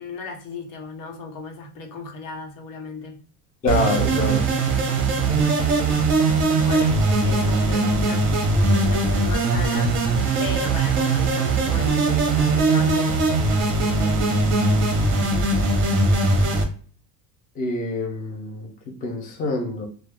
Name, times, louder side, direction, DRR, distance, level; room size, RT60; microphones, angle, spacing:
voice 1, 0.0-3.2 6.7-8.3 8.7-9.9 10.4-13.2 13.4-14.5, left 3 dB, 85° left, 1.0 m, -36 dB
voice 2, 3.6-4.5 17.6-19.9, left 2 dB, 20° left, 0.4 m, -26 dB
sound 1, 3.7-16.6, right 3 dB, 30° right, 0.6 m, -20 dB
2.3 x 2.2 x 3.3 m
cardioid pair, 140°, 46 cm